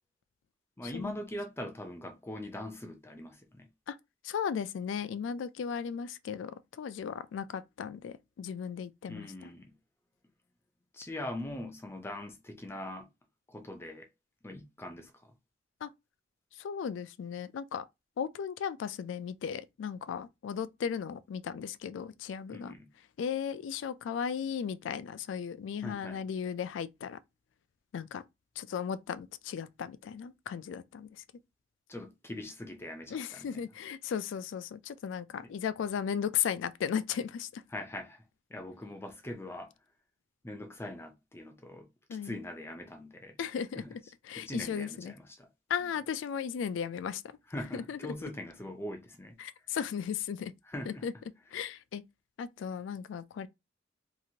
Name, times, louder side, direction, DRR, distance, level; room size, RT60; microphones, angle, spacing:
voice 1, 0.8-3.7 9.1-9.7 10.9-13.1 13.5-14.1 14.4-15.3 22.5-22.9 25.8-26.2 31.9-33.5 35.4-35.5 37.7-38.2 38.5-39.7 40.4-41.9 42.2-43.4 43.7-44.0 44.4-45.5 47.5-49.4 50.7-51.1, left 1 dB, 15° left, 0.5 m, -42 dB
voice 2, 4.2-9.3 15.8-15.9 16.6-17.8 18.2-22.7 23.2-27.2 27.9-28.2 28.6-31.1 33.1-37.6 42.1-42.4 43.4-44.0 44.3-45.1 45.7-47.2 47.7-48.0 49.4-50.5 50.9-51.1 51.5-52.0 52.4-53.5, left 7 dB, 80° left, 0.3 m, -36 dB
2.9 x 2.5 x 2.7 m
head